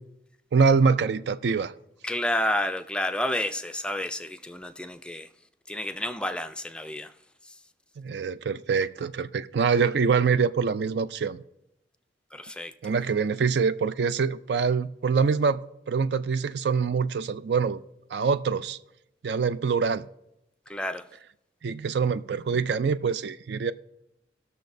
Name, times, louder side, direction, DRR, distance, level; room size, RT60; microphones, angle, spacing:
voice 1, 0.5-1.7 8.0-11.4 12.8-15.6 15.9-17.8 18.1-18.8 19.2-20.1 21.6-23.7, right 5 dB, 70° right, 0.4 m, -24 dB
voice 2, 2.0-5.3 5.7-7.1 7.4-7.5 12.3-12.7 20.7-21.1, left 1 dB, 5° left, 0.3 m, -30 dB
18.5 x 6.6 x 2.6 m
head